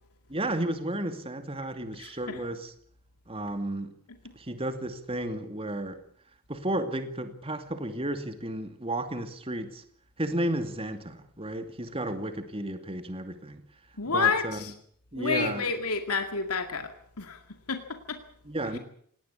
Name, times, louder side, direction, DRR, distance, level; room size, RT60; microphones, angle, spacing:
voice 1, 0.3-2.7 3.3-4.0 4.3-6.0 6.5-9.8 10.2-13.6 14.1-14.6 15.1-15.6 18.5-18.8, right 1 dB, 25° right, 2.5 m, -33 dB
voice 2, 2.0-2.4 14.0-14.7 15.1-17.4 17.7-18.2 18.7-18.8, left 5 dB, 85° left, 2.1 m, -30 dB
19.0 x 18.5 x 8.5 m
head